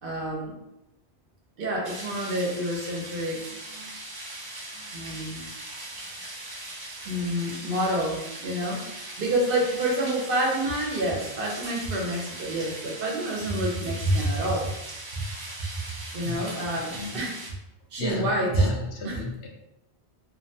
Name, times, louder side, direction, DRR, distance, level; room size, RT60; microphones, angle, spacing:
voice 1, 0.0-0.6 1.6-3.9 4.9-5.5 7.0-14.7 15.1-15.2 16.1-17.4 17.9-18.7 19.0-19.2, right 1 dB, 60° right, -2 dB, 0.8 m, -28 dB
sound 1, 1.8-17.5, right 2 dB, 40° right, 0.3 m, -40 dB
voice 2, 18.0-19.5, left 3 dB, 80° left, 1 dB, 0.9 m, -33 dB
2.6 x 2.2 x 2.6 m, 0.90 s
omnidirectional pair, 1.1 m